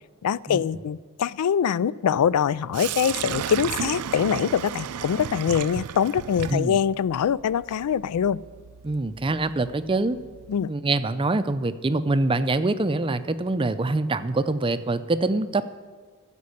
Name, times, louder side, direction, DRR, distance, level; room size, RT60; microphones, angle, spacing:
voice 1, 0.2-8.4 10.5-10.7, left 8 dB, 90° left, 20 dB, 0.3 m, -24 dB
Sink (filling or washing), 2.7-10.7, right 8 dB, 80° right, 0.4 m, -34 dB
voice 2, 8.8-10.2 10.7-15.7, right 2 dB, 25° right, 12 dB, 0.5 m, -24 dB
15.0 x 5.3 x 9.7 m, 1.5 s
head